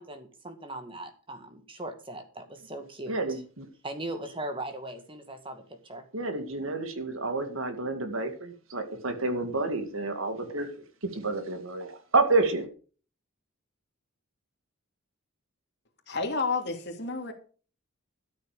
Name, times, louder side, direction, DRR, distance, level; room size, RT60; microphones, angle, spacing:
voice 1, 0.0-3.2 3.8-6.1, right 1 dB, 25° right, 7 dB, 2.0 m, -39 dB
voice 2, 3.1-3.7 6.1-10.7 11.1-12.7, right 3 dB, 75° right, 7 dB, 2.2 m, -29 dB
voice 3, 16.1-17.3, left 4 dB, 50° left, 4 dB, 2.8 m, -30 dB
13.0 x 7.3 x 6.6 m, 0.39 s
head